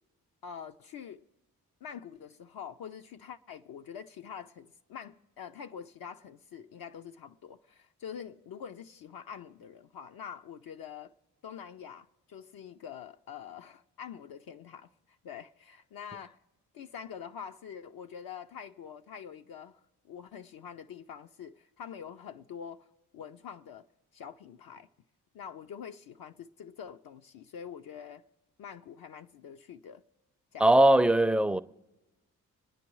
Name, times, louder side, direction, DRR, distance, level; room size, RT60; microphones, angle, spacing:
voice 1, 0.4-1.2 1.8-11.1 11.4-16.4 16.7-19.8 20.1-23.9 24.1-24.9 25.3-28.2 28.6-30.0 30.5-30.7, left 7 dB, 65° left, 0.5 m, -45 dB
voice 2, 30.6-31.6, right 1 dB, 5° right, 0.4 m, -20 dB
26.0 x 9.7 x 3.1 m
supercardioid pair, 50°, 39 cm